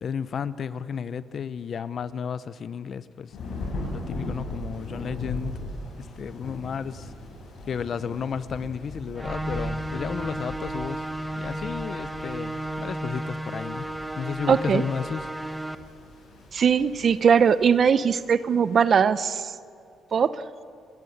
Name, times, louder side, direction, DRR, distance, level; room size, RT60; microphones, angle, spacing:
voice 1, 0.0-3.3 3.9-5.6 6.0-7.1 7.7-11.1 11.4-13.9 14.2-15.2, left 7 dB, 55° left, 15 dB, 0.8 m, -33 dB
Thunder / Rain, 3.3-18.9, left 1 dB, 75° left, 7.1 m, -39 dB
sound 1, 9.2-15.8, right 1 dB, 5° right, 1.1 m, -33 dB
voice 2, 14.5-14.8 16.5-19.5 20.1-20.4, right 7 dB, 50° right, 15 dB, 0.8 m, -20 dB
29.5 x 12.5 x 8.1 m, 2.2 s
cardioid pair, 90°, 0 cm